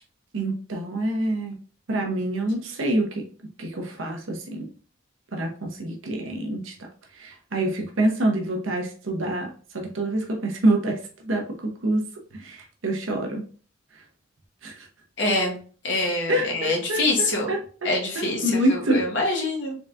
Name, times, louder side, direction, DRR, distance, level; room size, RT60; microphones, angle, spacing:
voice 1, 0.3-1.6 1.9-3.2 3.6-4.7 5.3-6.7 7.2-12.0 12.3-13.4 14.6-14.9 16.3-17.6 18.2-19.0, right 1 dB, 80° right, 2 dB, 0.8 m, -26 dB
voice 2, 15.2-15.5 15.8-17.5 17.8-19.7, left 2 dB, 65° left, 0 dB, 1.1 m, -25 dB
4.0 x 3.3 x 2.4 m, 0.41 s
head